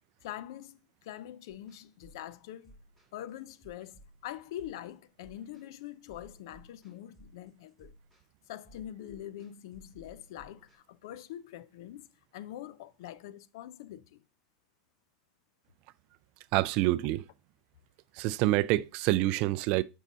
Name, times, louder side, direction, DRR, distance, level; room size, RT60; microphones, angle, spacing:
voice 1, 0.2-2.8 3.1-7.9 8.5-12.1 12.3-14.2, left 12 dB, 75° left, 0.4 m, -44 dB
sound 1, 1.5-10.8, right 1 dB, 5° left, 2.4 m, -58 dB
voice 2, 16.5-17.2 18.2-19.8, right 17 dB, 50° right, 0.3 m, -27 dB
7.2 x 5.4 x 2.6 m
supercardioid pair, 145°, 2 cm